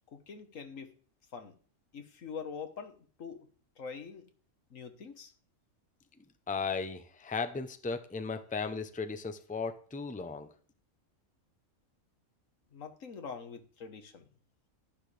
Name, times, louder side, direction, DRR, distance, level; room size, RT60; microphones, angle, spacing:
voice 1, 0.1-0.9 1.3-1.5 1.9-3.5 3.8-4.2 4.7-5.3 12.7-14.3, left 6 dB, 85° left, 7 dB, 1.7 m, -44 dB
voice 2, 6.5-10.5, left 4 dB, 10° left, 10 dB, 0.6 m, -36 dB
12.0 x 10.5 x 3.4 m, 0.43 s
omnidirectional pair, 1.3 m